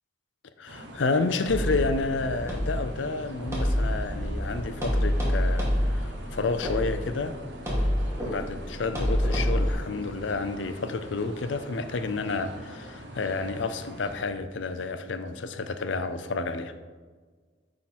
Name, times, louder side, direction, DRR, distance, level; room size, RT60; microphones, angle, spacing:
voice 1, 0.6-7.4 8.3-16.7, left 3 dB, 85° left, 10 dB, 0.6 m, -30 dB
sound 1, 0.7-14.2, equal, 75° right, 0.9 m, -43 dB
sound 2, 1.5-9.7, equal, 15° right, 1.7 m, -28 dB
9.8 x 3.8 x 4.3 m, 1.5 s
head